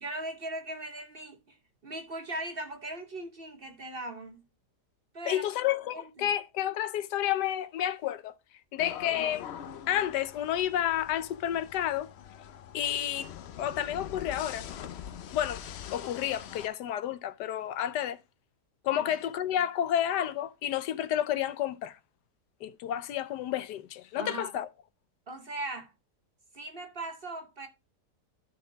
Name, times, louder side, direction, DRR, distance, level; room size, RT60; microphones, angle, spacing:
voice 1, 0.0-1.6 1.8-4.4 5.1-5.5 5.9-6.3 18.9-19.1 24.1-24.5 25.3-25.9 26.5-27.7, right 2 dB, 45° right, 0.9 m, -39 dB
voice 2, 5.2-8.3 8.7-9.4 9.9-12.1 12.7-13.3 13.6-14.7 15.3-15.6 15.9-18.2 18.8-22.0 22.6-24.7, left 11 dB, 85° left, 1.3 m, -30 dB
sound 1, 8.8-16.7, left 9 dB, 65° left, 0.6 m, -43 dB
12.5 x 4.3 x 3.9 m
omnidirectional pair, 1.8 m